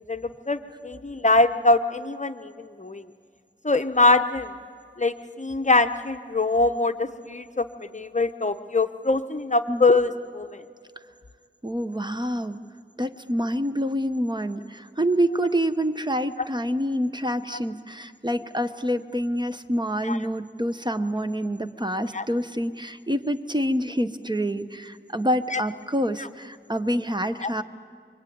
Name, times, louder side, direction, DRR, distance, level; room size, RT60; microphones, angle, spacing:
voice 1, 0.0-3.0 3.6-4.5 5.0-10.6 17.5-17.6 20.0-20.2 22.1-22.2 25.5-25.6 27.4-27.5, left 2 dB, 35° left, 9 dB, 0.9 m, -23 dB
voice 2, 11.6-12.6 13.0-27.6, equal, 20° right, 9 dB, 0.9 m, -27 dB
25.5 x 24.0 x 9.4 m, 2.2 s
wide cardioid pair, 65°, 20 cm